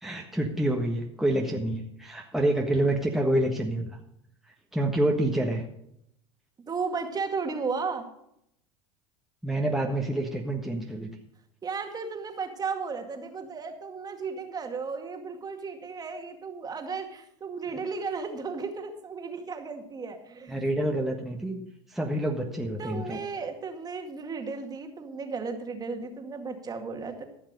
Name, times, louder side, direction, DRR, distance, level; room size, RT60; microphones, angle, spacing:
voice 1, 0.0-3.9 4.7-5.6 9.4-11.1 17.7-17.8 20.5-21.6 21.9-23.2, right 1 dB, ahead, 0 dB, 1.4 m, -27 dB
voice 2, 6.7-8.1 11.6-20.6 22.8-27.2, right 4 dB, 25° right, 5 dB, 2.0 m, -34 dB
15.0 x 6.2 x 6.6 m, 0.76 s
hypercardioid pair, 95°, 15 cm